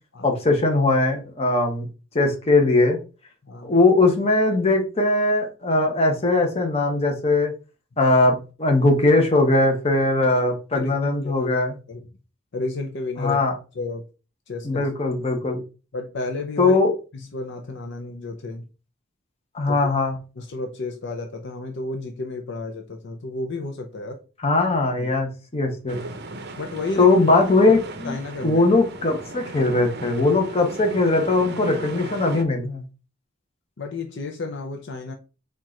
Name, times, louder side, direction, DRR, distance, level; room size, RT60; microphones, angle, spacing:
voice 1, 0.2-1.9 2.1-3.0 3.6-7.5 8.0-11.7 13.2-13.5 14.6-15.6 16.6-16.9 19.5-20.1 24.4-26.0 27.0-28.1 28.4-32.8, left 2 dB, 30° left, 1.0 m, -20 dB
voice 2, 10.7-11.5 11.9-12.1 12.5-13.4 13.7-14.1 14.5-14.9 15.9-16.8 17.1-18.7 19.7-19.9 20.4-24.2 24.9-25.1 26.6-27.2 28.0-28.7 33.8-35.1, left 3 dB, 60° left, 0.6 m, -32 dB
sound 1, 25.9-32.4, right 2 dB, 55° right, 0.6 m, -37 dB
4.5 x 2.5 x 4.3 m
head